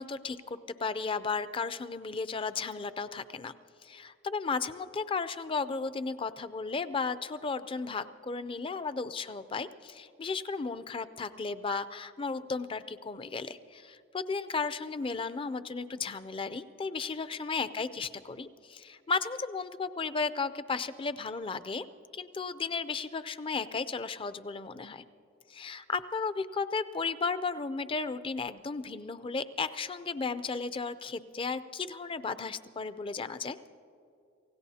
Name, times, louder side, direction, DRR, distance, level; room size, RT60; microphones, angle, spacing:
voice 1, 0.0-3.6 3.8-21.9 22.1-25.0 25.5-33.6, left 4 dB, 25° left, 13 dB, 0.4 m, -34 dB
28.0 x 16.5 x 2.8 m, 2.6 s
head